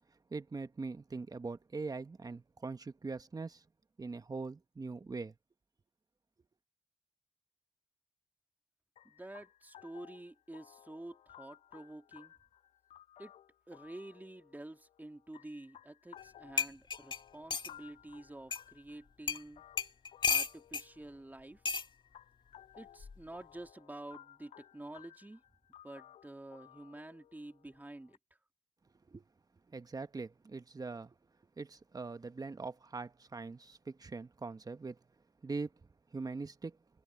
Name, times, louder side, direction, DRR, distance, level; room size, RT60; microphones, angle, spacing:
voice 1, 0.3-3.6 4.0-5.3 29.1-29.2 29.7-31.1 31.6-35.0 35.4-35.7 36.1-36.8, right 3 dB, 35° right, 1.4 m, -42 dB
sound 1, 9.0-28.2, left 11 dB, 80° left, 6.8 m, -59 dB
voice 2, 9.0-12.3 13.2-13.3 13.7-19.6 20.3-21.6 22.8-25.4 25.8-28.2, right 1 dB, 15° right, 2.9 m, -49 dB
sound 2, 16.2-16.3 16.6-17.7 18.5-18.6 19.3-19.4 19.8-20.9 21.6-21.9 23.0-23.3, left 5 dB, 45° left, 1.9 m, -33 dB
supercardioid pair, 50°, 11 cm